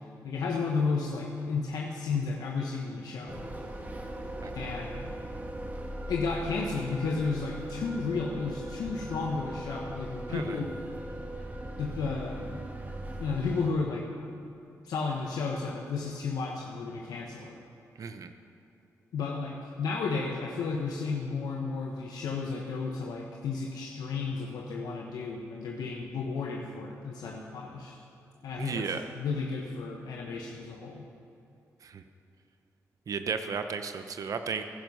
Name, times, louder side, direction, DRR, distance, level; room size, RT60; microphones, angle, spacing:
voice 1, 0.2-3.4 4.5-5.1 6.1-10.7 11.8-12.6 13.2-14.1 14.8-17.6 19.1-28.0 28.4-31.0, left 4 dB, 80° left, 0 dB, 1.1 m, -33 dB
sound 1, 3.3-13.7, right 1 dB, 25° right, 2.0 m, -39 dB
voice 2, 10.3-10.6 18.0-18.3 28.6-29.0 31.8-32.0 33.1-34.6, right 5 dB, 60° right, 8 dB, 0.8 m, -34 dB
16.0 x 10.5 x 5.5 m, 2.7 s
supercardioid pair, 55°, 6 cm